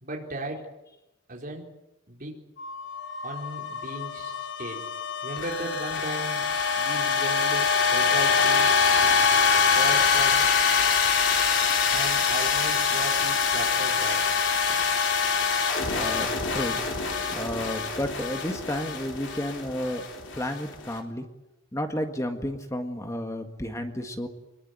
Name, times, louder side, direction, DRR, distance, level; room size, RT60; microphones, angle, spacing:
voice 1, 0.0-0.7 1.3-1.7 2.1-2.4 3.2-4.9 5.2-6.5 6.8-9.3 9.7-10.5 11.9-14.3, right 2 dB, 40° right, 0 dB, 4.5 m, -36 dB
sound 1, 2.6-20.9, left 5 dB, 60° left, 3.9 m, -24 dB
voice 2, 15.9-16.8 17.3-20.0 20.3-21.3 21.7-24.3, equal, 15° left, 6 dB, 1.7 m, -32 dB
23.5 x 21.5 x 9.5 m, 0.95 s
head